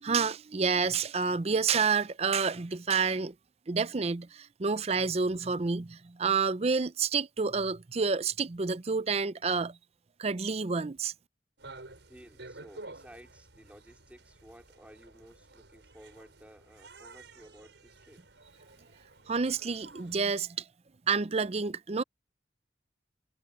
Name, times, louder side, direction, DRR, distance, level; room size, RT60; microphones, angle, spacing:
voice 1, 0.0-3.3 3.7-9.8 10.2-11.1 19.3-20.6 21.1-22.0, right 5 dB, 35° right, 0.5 m, -29 dB
sound 1, 11.6-20.3, right 2 dB, 90° right, 5.7 m, -51 dB
voice 2, 12.1-18.2, equal, 10° right, 4.3 m, -55 dB
head